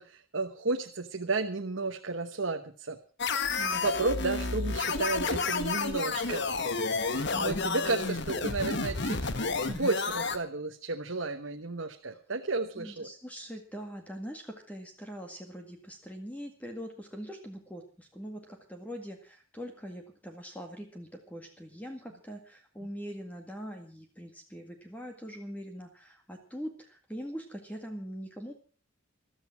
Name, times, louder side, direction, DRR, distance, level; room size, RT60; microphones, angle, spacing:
voice 1, 0.0-3.0 3.7-6.4 7.0-9.2 9.6-13.1, right 3 dB, 65° right, 4 dB, 1.1 m, -32 dB
sound 1, 3.2-10.4, left 4 dB, 55° left, 1.3 m, -31 dB
voice 2, 3.6-4.1 7.3-8.0 12.1-12.2 12.8-28.5, equal, 10° left, 3 dB, 1.9 m, -42 dB
14.5 x 13.0 x 6.0 m, 0.39 s
head